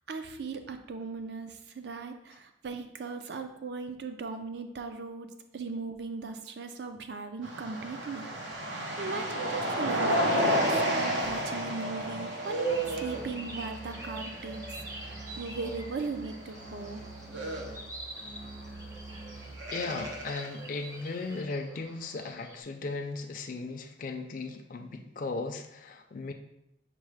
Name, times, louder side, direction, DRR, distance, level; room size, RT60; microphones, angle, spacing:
voice 1, 0.1-5.3 5.5-8.3 8.7-17.0, right 4 dB, 65° right, 7 dB, 0.4 m, -38 dB
sound 1, 7.4-16.0 16.4-16.6 17.2-17.7 19.1-19.2 19.6-20.5, right 1 dB, 90° right, 0.8 m, -31 dB
sound 2, 12.3-22.6, right 1 dB, 15° right, 0.6 m, -47 dB
Musical instrument, 12.7-20.3, right 2 dB, 40° right, 0.8 m, -46 dB
voice 2, 19.7-26.3, left 3 dB, 45° left, 4 dB, 0.4 m, -37 dB
5.3 x 2.1 x 4.7 m, 0.81 s
head